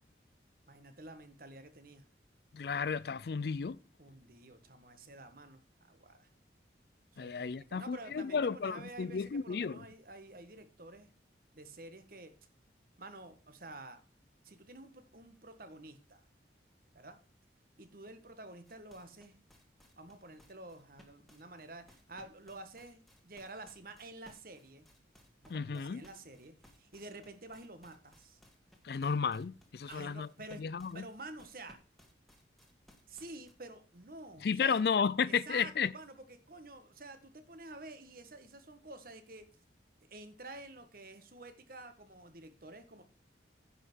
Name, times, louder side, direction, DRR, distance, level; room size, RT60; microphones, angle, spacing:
voice 1, 0.7-2.0 4.0-6.3 7.1-11.1 11.5-12.3 13.0-14.0 14.4-16.2 16.9-17.2 17.8-19.4 20.0-24.9 25.4-28.4 29.9-30.6 30.9-31.8 33.1-34.8 35.3-39.4 40.1-43.0, right 2 dB, 55° right, 1.5 m, -50 dB
voice 2, 2.5-3.8 7.2-9.8 25.5-26.0 28.8-30.3 30.6-31.1 34.4-35.9, left 6 dB, 60° left, 0.4 m, -33 dB
sound 1, 18.7-33.5, equal, ahead, 1.7 m, -62 dB
9.9 x 5.7 x 6.1 m
head